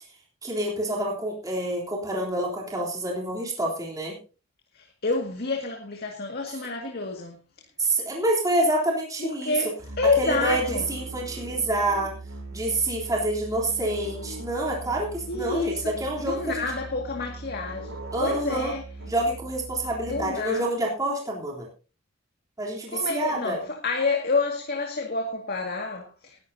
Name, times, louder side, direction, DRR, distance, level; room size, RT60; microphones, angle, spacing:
voice 1, 0.4-4.2 7.8-9.5 10.2-12.1 12.5-16.6 18.1-18.7 19.1-21.7 22.6-23.6, right 1 dB, 20° right, 3.5 m, -27 dB
voice 2, 4.7-7.4 9.2-10.9 15.3-18.9 20.1-20.7 22.9-26.4, left 3 dB, 50° left, 2.1 m, -28 dB
Musical instrument, 9.8-20.6, right 2 dB, 75° right, 5.4 m, -40 dB
19.0 x 12.0 x 2.8 m
head